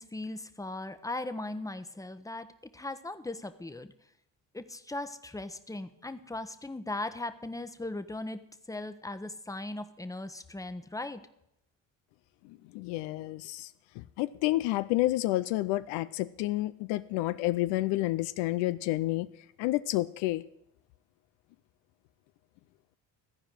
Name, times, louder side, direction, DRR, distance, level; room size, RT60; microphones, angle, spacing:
voice 1, 0.0-2.5 2.7-3.9 4.5-11.2, left 2 dB, 10° left, 10 dB, 0.9 m, -38 dB
voice 2, 12.4-13.7 14.0-19.3 19.6-20.4, left 17 dB, 85° left, 14 dB, 0.5 m, -30 dB
14.0 x 4.9 x 9.0 m, 0.77 s
supercardioid pair, 70°, 41 cm